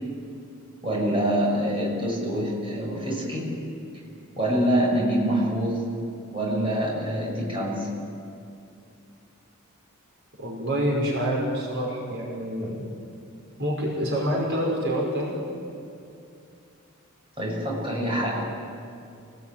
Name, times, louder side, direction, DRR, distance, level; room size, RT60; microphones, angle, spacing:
voice 1, 0.8-3.5 4.3-5.9 6.3-7.9 17.4-18.4, equal, 25° right, -3 dB, 6.8 m, -25 dB
voice 2, 10.4-12.8 13.6-15.3, equal, 55° right, -2 dB, 5.7 m, -27 dB
29.0 x 20.5 x 9.2 m, 2.5 s
head